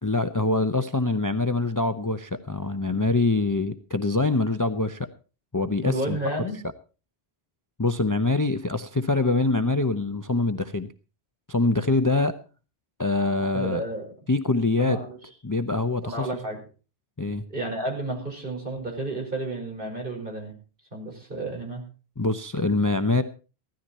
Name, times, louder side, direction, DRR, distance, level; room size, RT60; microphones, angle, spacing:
voice 1, 0.0-5.1 5.5-6.2 7.8-10.9 11.5-12.3 13.0-13.8 14.3-15.0 15.4-16.3 17.2-17.4 22.2-23.2, left 2 dB, 20° left, 10 dB, 0.6 m, -24 dB
voice 2, 5.8-6.6 13.5-14.1 14.8-15.2 16.0-16.6 17.5-20.5 20.9-21.8, right 2 dB, 55° right, 1 dB, 5.3 m, -31 dB
16.0 x 13.0 x 4.2 m, 0.35 s
omnidirectional pair, 1.1 m